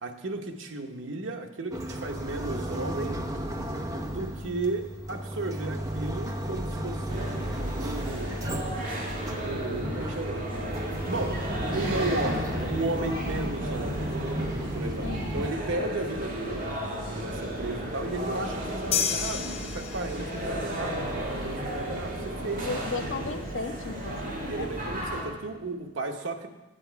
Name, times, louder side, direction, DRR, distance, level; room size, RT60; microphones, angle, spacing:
voice 1, 0.0-3.2 4.1-7.3 7.8-8.8 9.4-10.5 11.1-11.4 11.7-14.2 14.6-16.7 17.1-21.0 21.4-22.9 24.5-26.5, right 2 dB, 80° right, 4 dB, 0.9 m, -34 dB
sound 1, 1.7-15.5, right 1 dB, 20° right, 0.8 m, -34 dB
sound 2, 7.1-25.2, right 1 dB, 45° right, 2.1 m, -34 dB
voice 2, 15.0-15.4 22.6-24.7, left 3 dB, 85° left, 8 dB, 0.7 m, -35 dB
sound 3, 18.9-20.5, left 7 dB, 30° left, 0.6 m, -30 dB
8.9 x 8.0 x 4.5 m, 1.1 s
head